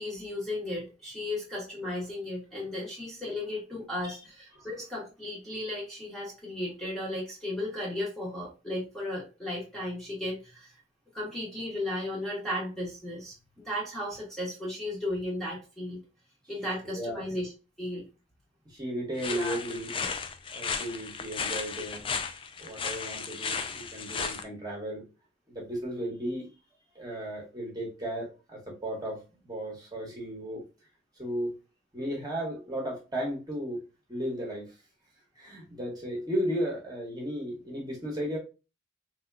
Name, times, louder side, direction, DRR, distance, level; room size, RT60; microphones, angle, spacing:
voice 1, 0.0-10.8 11.1-16.0 16.5-17.5 17.8-18.1 19.3-19.6, left 1 dB, ahead, -5 dB, 1.1 m, -35 dB
voice 2, 16.8-17.3 18.6-19.9 20.5-22.0 22.6-25.0 25.5-26.5 26.9-30.6 31.2-31.5 31.9-33.8 34.1-34.7 35.4-38.4, equal, 20° right, -2 dB, 1.2 m, -35 dB
sound 1, 19.2-24.4, left 5 dB, 25° left, 0.4 m, -35 dB
3.7 x 2.8 x 2.3 m, 0.30 s
head